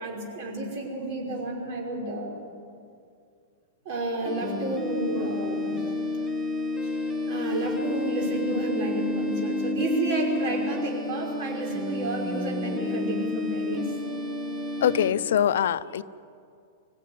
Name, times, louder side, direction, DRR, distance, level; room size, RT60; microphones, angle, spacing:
voice 1, 0.0-2.4 3.9-5.8 6.7-13.9, right 2 dB, 40° right, -1 dB, 5.4 m, -31 dB
sound 1, 4.2-15.1, left 2 dB, 5° right, 1.1 m, -30 dB
voice 2, 14.8-16.0, left 9 dB, 70° left, 13 dB, 0.7 m, -23 dB
24.5 x 16.0 x 9.7 m, 2.3 s
supercardioid pair, 180°, 0 cm